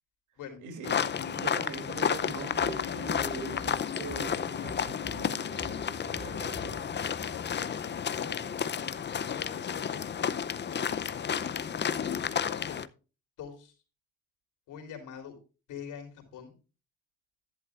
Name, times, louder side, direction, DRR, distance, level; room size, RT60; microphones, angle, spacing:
voice 1, 0.6-1.0 1.4-7.0, right 5 dB, 80° right, 2.9 m, -42 dB
sound 1, 0.8-12.9, left 7 dB, 35° left, 0.6 m, -32 dB
sound 2, 2.5-8.5 8.9-9.0, left 2 dB, 15° left, 1.7 m, -47 dB
voice 2, 7.3-8.4 9.2-10.1 11.3-12.8 13.4-13.7 14.7-15.4 15.7-16.5, left 7 dB, 85° left, 3.6 m, -45 dB
11.0 x 11.0 x 2.5 m
cardioid pair, 90°, 30 cm